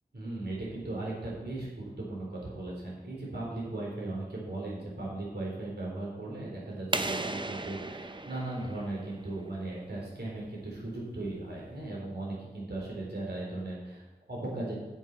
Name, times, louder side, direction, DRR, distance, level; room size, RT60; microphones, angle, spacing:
voice 1, 0.1-14.7, right 2 dB, 75° right, -4 dB, 3.9 m, -37 dB
sound 1, 6.9-9.6, right 2 dB, 30° right, 0.6 m, -36 dB
8.8 x 7.3 x 5.5 m, 1.1 s
wide cardioid pair, 60°, 17 cm